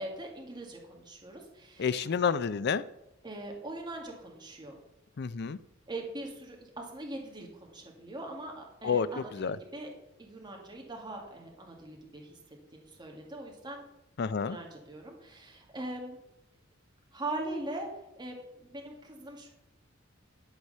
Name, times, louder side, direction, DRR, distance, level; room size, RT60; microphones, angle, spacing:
voice 1, 0.0-2.1 3.2-4.8 5.9-9.9 10.2-12.4 12.7-13.8 14.4-16.2 17.1-17.9 18.2-19.5, right 2 dB, 20° right, 1.9 m, -41 dB
voice 2, 1.8-2.8 5.2-5.6 8.8-9.1 9.3-9.6 14.2-14.6, left 6 dB, 55° left, 0.5 m, -29 dB
12.0 x 4.8 x 6.6 m
head